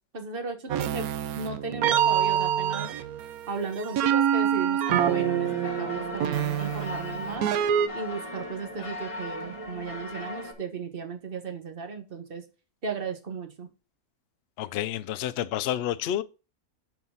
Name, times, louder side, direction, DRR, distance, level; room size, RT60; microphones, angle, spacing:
voice 1, 0.1-1.1 1.4-2.9 3.5-7.5 7.9-12.4 12.8-13.7, right 5 dB, 40° right, 1.2 m, -35 dB
sound 1, 0.7-7.9, right 9 dB, 80° right, 1.1 m, -26 dB
sound 2, 4.9-10.5, left 1 dB, 25° left, 1.3 m, -38 dB
voice 2, 14.6-16.2, left 11 dB, 70° left, 0.6 m, -29 dB
6.2 x 4.6 x 5.6 m
omnidirectional pair, 1.6 m